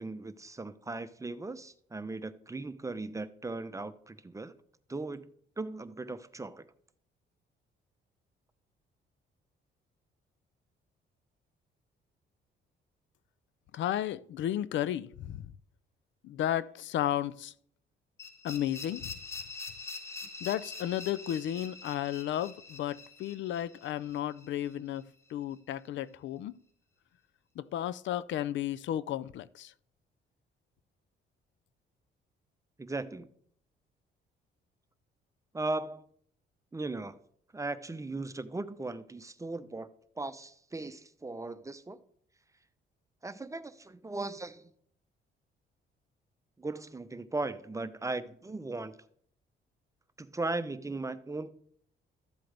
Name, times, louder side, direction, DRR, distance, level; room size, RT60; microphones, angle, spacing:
voice 1, 0.0-4.6 4.9-5.3 5.6-6.6 32.8-33.3 35.5-36.0 36.7-37.2 37.5-39.9 40.2-42.0 43.2-44.7 46.6-49.0 50.2-51.5, right 2 dB, 15° right, 0.7 m, -37 dB
voice 2, 13.7-15.5 16.2-17.5 18.4-19.1 20.4-26.5 27.6-29.7, left 11 dB, 70° left, 0.4 m, -33 dB
sound 1, 18.2-25.0, left 3 dB, 15° left, 2.7 m, -44 dB
13.5 x 7.7 x 3.3 m
cardioid pair, 90°, 20 cm